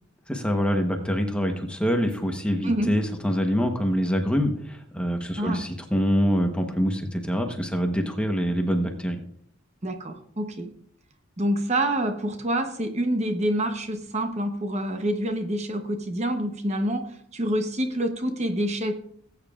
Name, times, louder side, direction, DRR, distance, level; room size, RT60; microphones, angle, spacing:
voice 1, 0.3-9.2, equal, 5° left, 4 dB, 1.0 m, -25 dB
voice 2, 2.6-2.9 5.4-5.6 9.8-10.7 11.4-18.9, right 1 dB, 30° right, 5 dB, 0.9 m, -27 dB
18.5 x 9.0 x 2.4 m, 0.65 s
head